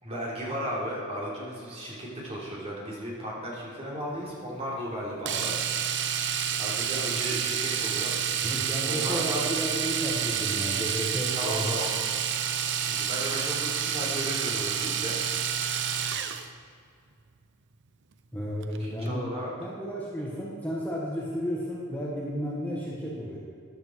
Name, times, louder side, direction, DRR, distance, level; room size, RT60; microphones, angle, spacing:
voice 1, 0.0-5.5 6.5-8.2 8.8-9.5 11.3-11.9 12.8-15.1 18.8-19.5, equal, 30° right, -5 dB, 3.5 m, -35 dB
Domestic sounds home sounds, 5.3-16.5 18.6-18.8 19.1-19.2, right 8 dB, 55° right, 0.7 m, -29 dB
voice 2, 8.4-11.7 18.3-19.2 19.6-23.4, equal, 10° left, -5 dB, 1.6 m, -32 dB
14.0 x 10.0 x 4.7 m, 2.4 s
head